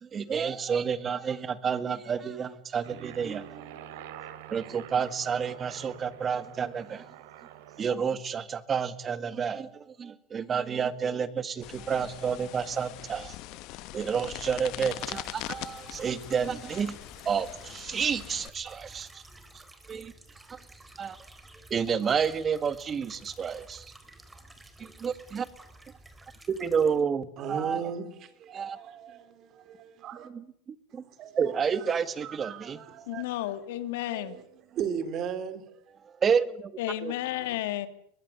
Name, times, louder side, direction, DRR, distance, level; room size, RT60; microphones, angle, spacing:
voice 1, 0.0-3.8 4.5-7.1 7.8-13.4 13.9-17.0 17.3-19.2 19.9-20.1 21.0-21.2 21.7-23.9 24.8-25.5 26.5-27.8 28.5-28.8 30.3-31.0 31.4-32.8 36.2-36.7 37.0-37.1, right 6 dB, 25° right, 1.8 m, -30 dB
Aircraft, 2.8-8.0, right 11 dB, 75° right, 3.3 m, -46 dB
sound 1, 11.6-18.5, left 18 dB, 55° left, 1.1 m, -42 dB
sound 2, 14.6-27.0, right 2 dB, 10° right, 4.1 m, -52 dB
voice 2, 27.4-30.3 30.9-31.9 32.2-33.3 34.1-35.6, right 7 dB, 40° right, 3.8 m, -37 dB
voice 3, 33.1-34.4 36.8-37.9, left 14 dB, 75° left, 2.6 m, -32 dB
23.0 x 20.0 x 9.9 m
supercardioid pair, 125°, 0 cm